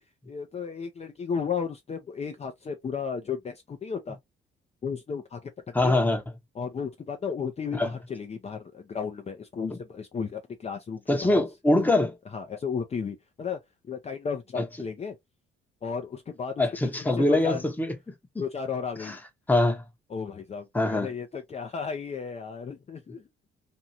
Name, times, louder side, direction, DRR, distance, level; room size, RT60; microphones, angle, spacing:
voice 1, 0.3-4.2 4.8-5.5 5.8-6.0 6.6-11.4 12.3-13.6 13.9-15.2 15.8-16.7 17.0-17.6 18.4-19.2 20.1-23.2, left 6 dB, 35° left, 0.6 m, -34 dB
voice 2, 5.7-6.2 7.8-7.9 11.1-12.1 14.6-14.7 16.6-17.9 19.0-19.2 19.5-19.8 20.7-21.1, left 2 dB, 10° left, 0.8 m, -23 dB
2.6 x 2.3 x 2.7 m
cardioid pair, 90°, 20 cm